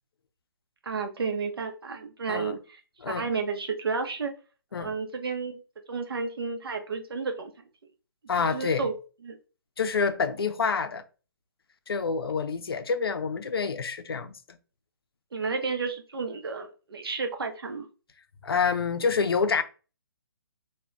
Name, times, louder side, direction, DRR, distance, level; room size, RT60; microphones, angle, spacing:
voice 1, 0.8-2.8 3.1-4.3 4.8-5.6 5.9-7.5 8.4-8.9 9.2-9.4 15.3-17.9, right 4 dB, 80° right, 0.6 m, -32 dB
voice 2, 2.3-2.6 3.0-3.3 4.7-4.9 8.3-8.9 9.8-11.0 11.9-14.6 18.4-19.6, left 5 dB, 80° left, 0.4 m, -27 dB
2.1 x 2.1 x 3.6 m
hypercardioid pair, 145°, 12 cm